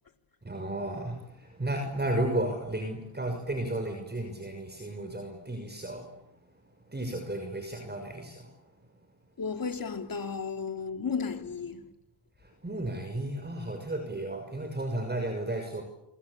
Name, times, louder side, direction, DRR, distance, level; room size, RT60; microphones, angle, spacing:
voice 1, 0.4-6.5 6.9-8.6 12.4-15.8, right 1 dB, 20° right, 6.2 m, -33 dB
voice 2, 9.4-11.9, left 5 dB, 45° left, 3.4 m, -34 dB
27.5 x 25.5 x 8.5 m
cardioid pair, 75°, 47 cm